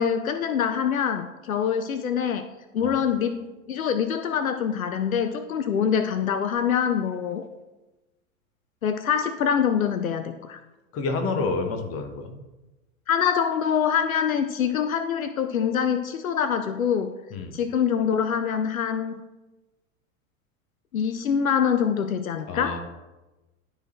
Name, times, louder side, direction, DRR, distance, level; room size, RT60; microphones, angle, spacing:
voice 1, 0.0-2.4 2.7-7.5 8.8-10.6 13.1-17.1 17.5-19.1 20.9-22.8, left 7 dB, 80° left, 9 dB, 0.6 m, -25 dB
voice 2, 10.9-12.3 17.3-17.5 22.5-22.8, left 3 dB, 35° left, 6 dB, 1.3 m, -29 dB
11.5 x 4.0 x 4.4 m, 1.1 s
figure-of-eight pair, 85°, 42 cm